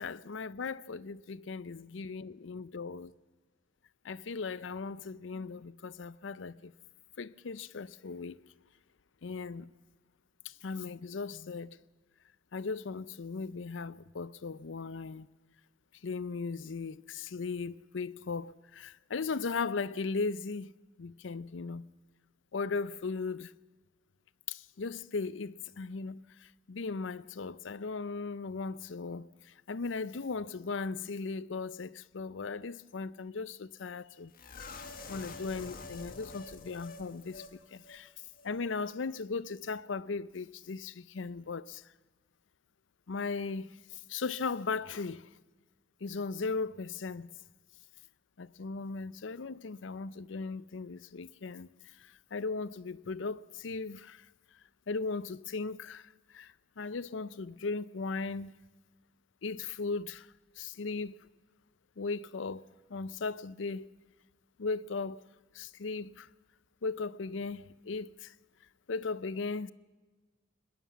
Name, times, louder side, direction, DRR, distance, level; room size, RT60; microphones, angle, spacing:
voice 1, 0.0-3.1 4.0-6.7 7.2-8.5 9.2-9.7 10.4-11.8 12.5-15.3 16.0-20.7 21.0-21.9 22.5-23.5 24.5-34.3 35.1-38.1 38.4-41.9 43.1-45.3 46.0-47.3 48.4-54.3 54.9-58.6 59.4-60.3 60.6-61.3 62.0-63.9 64.6-65.2 65.5-66.3 66.8-68.3 68.9-69.7, left 4 dB, 85° left, 0.6 m, -37 dB
sound 1, 34.3-37.5 37.8-38.0 38.3-38.5, left 3 dB, 50° left, 1.7 m, -47 dB
21.0 x 19.0 x 7.2 m
head